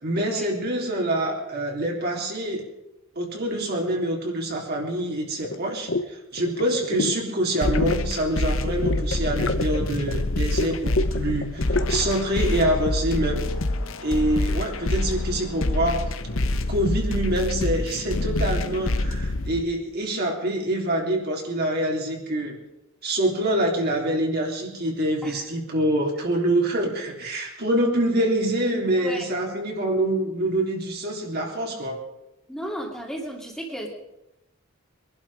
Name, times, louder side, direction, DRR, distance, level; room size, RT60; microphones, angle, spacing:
voice 1, 0.0-2.6 3.2-13.4 14.0-16.1 16.7-22.6 23.0-32.0, right 1 dB, 55° right, 0 dB, 3.6 m, -25 dB
sound 1, 5.4-5.6 5.9-6.1 6.4-7.2 7.5-8.1 8.7-10.2 10.5-12.1, left 2 dB, 70° left, 1.0 m, -27 dB
sound 2, 7.6-19.6, left 2 dB, 90° left, 1.1 m, -26 dB
voice 2, 29.0-29.3 32.5-33.9, equal, ahead, -1 dB, 2.3 m, -34 dB
23.0 x 11.5 x 5.0 m, 0.92 s
head